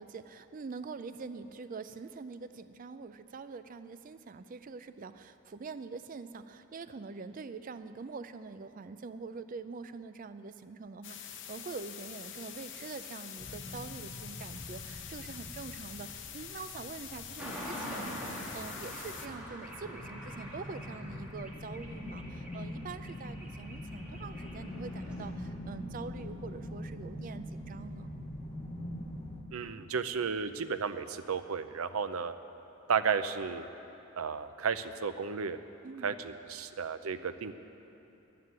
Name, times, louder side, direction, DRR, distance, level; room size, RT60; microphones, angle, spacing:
voice 1, 0.0-28.1 35.8-36.2, right 4 dB, 40° right, 11 dB, 0.4 m, -44 dB
sound 1, 11.0-19.3, left 9 dB, 60° left, 0.8 m, -45 dB
sound 2, 13.4-29.4, left 1 dB, 30° left, 0.9 m, -44 dB
sound 3, 17.4-25.3, equal, 5° right, 2.1 m, -45 dB
voice 2, 29.5-32.3 32.9-33.6 34.2-35.6 36.0-37.5, right 6 dB, 80° right, 11 dB, 0.6 m, -33 dB
11.0 x 9.7 x 9.4 m, 3.0 s
head